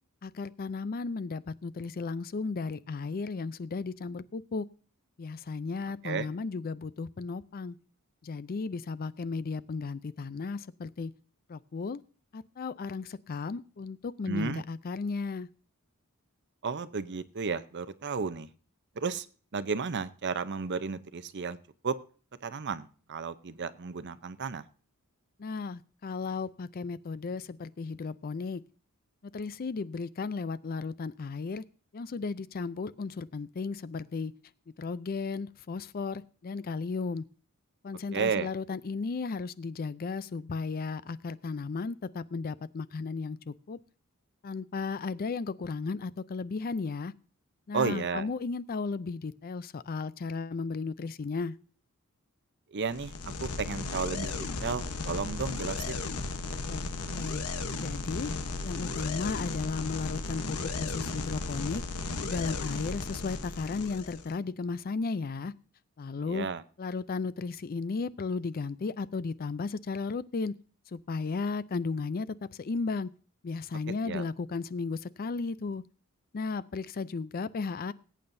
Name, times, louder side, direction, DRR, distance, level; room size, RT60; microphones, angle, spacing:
voice 1, 0.2-4.7 5.2-7.8 8.2-11.1 11.5-12.0 12.3-15.5 25.4-28.6 29.2-31.6 31.9-34.3 34.8-37.2 37.8-43.8 44.4-47.1 47.7-51.5 56.7-56.9 57.1-57.5 57.8-58.3 58.6-61.8 62.2-65.5 66.0-66.5 66.8-70.5 70.9-73.1 73.4-75.8 76.3-77.9, left 4 dB, 45° left, 17 dB, 0.4 m, -35 dB
voice 2, 14.3-14.6 16.6-18.5 19.0-19.3 19.5-21.6 21.8-22.0 22.4-24.6 38.1-38.5 47.7-48.3 52.7-53.1 53.4-54.3 54.6-56.1 66.3-66.6 74.0-74.2, right 5 dB, 50° right, 13 dB, 0.7 m, -33 dB
sound 1, 52.9-64.3, left 3 dB, 90° left, 1.0 m, -35 dB
20.0 x 8.7 x 2.6 m, 0.40 s
head